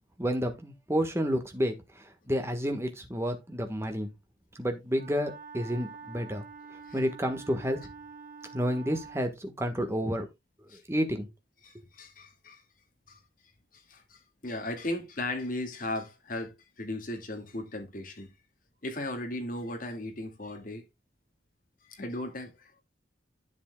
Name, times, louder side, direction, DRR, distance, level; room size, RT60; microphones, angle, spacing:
voice 1, 0.2-4.1 4.6-6.4 6.9-7.8 8.5-10.3 10.9-11.3, equal, 15° right, 1.3 m, -30 dB
Wind instrument woodwind instrument, 4.9-9.3, right 5 dB, 45° right, 1.1 m, -47 dB
voice 2, 11.6-12.6 13.1-13.2 13.7-18.3 18.8-20.8 21.9-22.7, left 1 dB, 50° left, 2.0 m, -37 dB
10.5 x 7.3 x 2.2 m
head